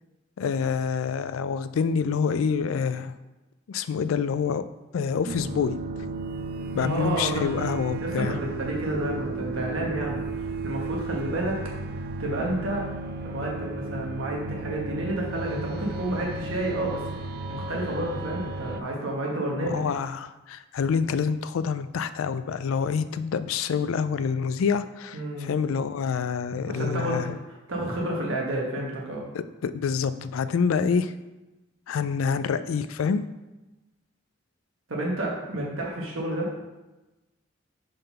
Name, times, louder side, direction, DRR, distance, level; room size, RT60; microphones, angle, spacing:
voice 1, 0.4-3.1 3.7-4.6 4.9-5.8 6.7-8.3 19.7-27.4 29.3-31.1 31.9-33.2, left 6 dB, 85° left, 13 dB, 0.4 m, -27 dB
sound 1, 5.3-18.8, right 3 dB, 50° right, 0.3 m, -34 dB
voice 2, 6.8-7.7 8.0-10.2 10.6-11.6 12.2-12.9 13.2-17.0 17.5-19.8 25.1-25.5 26.7-27.2 27.7-29.2 34.9-36.6, right 1 dB, 80° right, -2 dB, 1.3 m, -30 dB
5.3 x 3.8 x 5.6 m, 1.1 s
head